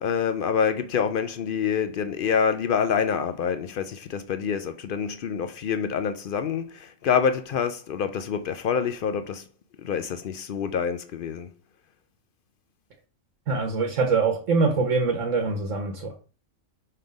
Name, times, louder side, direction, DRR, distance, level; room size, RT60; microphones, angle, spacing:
voice 1, 0.0-9.4 9.8-11.5, left 7 dB, 70° left, 0.5 m, -26 dB
voice 2, 13.5-16.2, right 4 dB, 70° right, 1.3 m, -24 dB
5.7 x 3.3 x 5.1 m
omnidirectional pair, 1.4 m